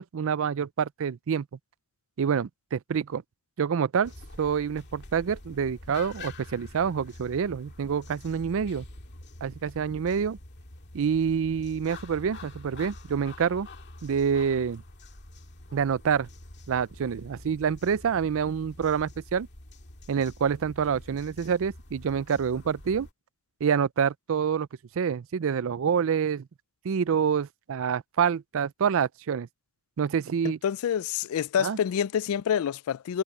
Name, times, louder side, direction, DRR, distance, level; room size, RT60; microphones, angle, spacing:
voice 1, 0.0-1.5 2.2-3.2 3.6-4.1 4.4-8.8 9.4-10.4 10.9-13.7 14.0-14.8 15.7-16.3 16.7-19.5 20.1-23.1 23.6-24.7 25.0-26.5 26.8-29.5 30.0-30.6 31.6-31.8, right 7 dB, 65° right, 0.4 m, -27 dB
sound 1, 4.0-23.1, left 2 dB, 55° left, 2.3 m, -46 dB
voice 2, 30.6-33.2, left 8 dB, 75° left, 0.3 m, -27 dB
head